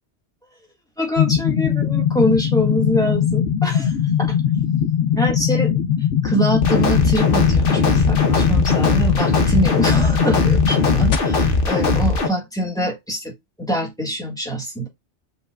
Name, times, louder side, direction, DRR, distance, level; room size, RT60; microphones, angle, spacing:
voice 1, 1.0-3.9 4.2-4.3 5.1-5.7 6.2-13.3 13.6-14.9, equal, 5° left, 1.6 m, -24 dB
sound 1, 1.2-11.2, left 9 dB, 80° left, 1.0 m, -20 dB
sound 2, 6.6-12.3, left 3 dB, 50° left, 1.1 m, -19 dB
5.3 x 4.0 x 2.3 m
omnidirectional pair, 1.2 m